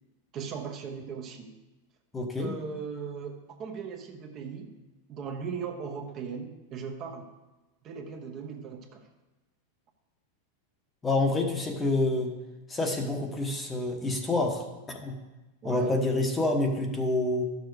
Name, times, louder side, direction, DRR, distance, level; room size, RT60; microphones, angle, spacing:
voice 1, 0.3-1.5 2.4-4.8 5.1-7.3 7.8-9.0 15.6-16.0, right 6 dB, 35° right, 4 dB, 1.0 m, -38 dB
voice 2, 2.1-2.5 11.0-12.3 12.7-15.2 15.6-17.4, left 2 dB, 15° left, 3 dB, 1.1 m, -27 dB
11.5 x 6.8 x 4.9 m, 1.1 s
supercardioid pair, 150°, 0 cm